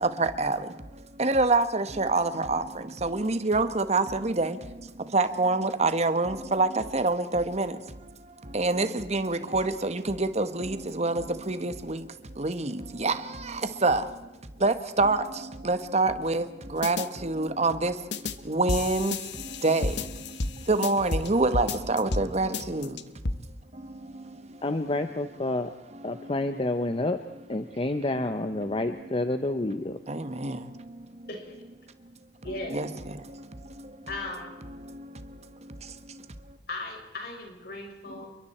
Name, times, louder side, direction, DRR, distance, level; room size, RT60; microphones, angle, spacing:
voice 1, 0.0-0.6 1.2-2.6 3.0-4.6 5.1-7.7 8.5-12.0 12.4-12.7 13.0-13.2 13.8-14.0 14.6-15.2 15.6-16.4 16.7-17.0 17.2-17.9 18.5-19.2 19.6-19.9 20.7-22.9 30.1-30.6 32.7-32.9, right 3 dB, 40° right, 1.4 m, -25 dB
sound 1, 16.8-17.1 18.1-18.3 18.7-21.3 21.5-22.3 22.5-23.3, left 3 dB, 80° left, 1.1 m, -31 dB
voice 2, 24.6-25.7 26.0-27.2 27.5-30.0, left 2 dB, 30° left, 0.9 m, -29 dB
voice 3, 31.3-31.6 32.4-32.8 34.1-34.5 36.7-38.3, left 2 dB, 60° left, 6.0 m, -37 dB
29.0 x 23.0 x 4.4 m
head